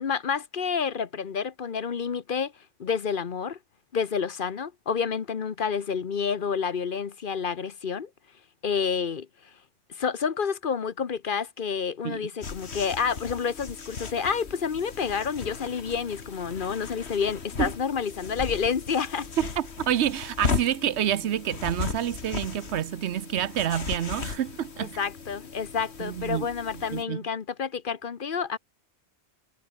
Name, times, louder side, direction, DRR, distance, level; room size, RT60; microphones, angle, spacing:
voice 1, 0.0-2.5 2.8-3.6 3.9-8.1 8.6-9.5 9.9-19.3 25.0-28.6, left 6 dB, 55° left, 1.1 m, -29 dB
sound 1, 12.4-27.0, left 5 dB, 75° left, 2.0 m, -36 dB
voice 2, 19.4-25.0 26.0-26.5 26.9-27.2, right 10 dB, 85° right, 1.0 m, -28 dB
omnidirectional pair, 1.1 m